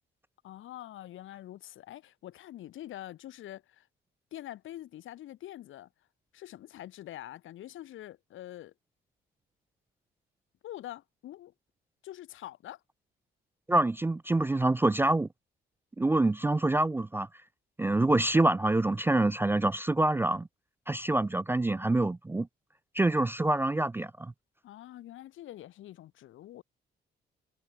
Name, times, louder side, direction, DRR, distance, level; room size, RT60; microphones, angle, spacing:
voice 1, 0.4-3.9 4.3-5.9 6.3-8.7 10.6-11.5 12.0-12.8 24.6-26.6, left 13 dB, 80° left, 4.1 m, -45 dB
voice 2, 13.7-15.3 16.0-17.3 17.8-20.5 20.9-22.5 22.9-24.3, right 2 dB, 10° right, 0.3 m, -26 dB
cardioid pair, 90°, 20 cm